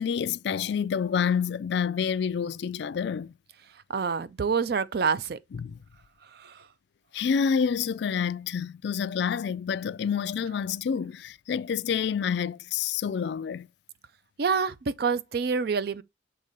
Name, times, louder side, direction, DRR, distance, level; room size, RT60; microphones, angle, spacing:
voice 1, 0.0-3.3 5.5-5.8 7.1-13.7, left 7 dB, 60° left, 0.3 m, -28 dB
voice 2, 3.9-5.4 6.3-6.7 14.4-16.0, right 5 dB, 55° right, 0.4 m, -27 dB
6.6 x 3.6 x 4.0 m
head